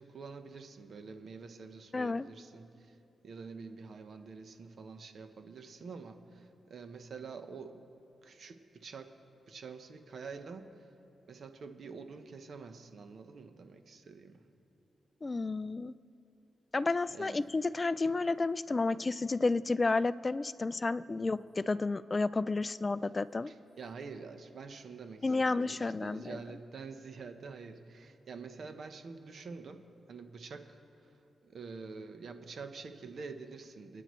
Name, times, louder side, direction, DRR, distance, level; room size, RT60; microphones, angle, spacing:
voice 1, 0.0-3.0 3.2-7.8 8.2-9.2 9.5-10.9 11.3-14.4 17.1-17.4 18.0-18.3 21.1-21.2 23.5-31.2 31.4-34.0, right 4 dB, 60° right, 7 dB, 0.9 m, -47 dB
voice 2, 1.9-2.3 15.2-15.9 16.7-23.5 25.2-26.4, left 3 dB, 30° left, 16 dB, 0.3 m, -31 dB
29.0 x 9.9 x 3.2 m, 2.8 s
cardioid pair, 105°, 0 cm